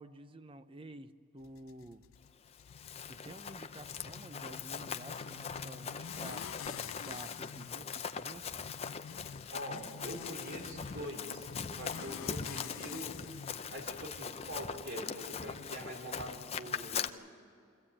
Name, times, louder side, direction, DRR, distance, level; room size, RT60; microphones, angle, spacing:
voice 1, 0.0-2.0 3.1-6.5 6.7-8.5, right 1 dB, 25° right, 12 dB, 0.6 m, -50 dB
sound 1, 1.4-16.9, left 7 dB, 75° left, 0.4 m, -50 dB
Run, 2.5-17.1, left 6 dB, 30° left, 0.5 m, -41 dB
voice 2, 9.5-11.5 11.8-13.1 13.7-17.1, equal, 55° right, 1 dB, 4.4 m, -44 dB
24.5 x 15.0 x 8.7 m, 2.5 s
head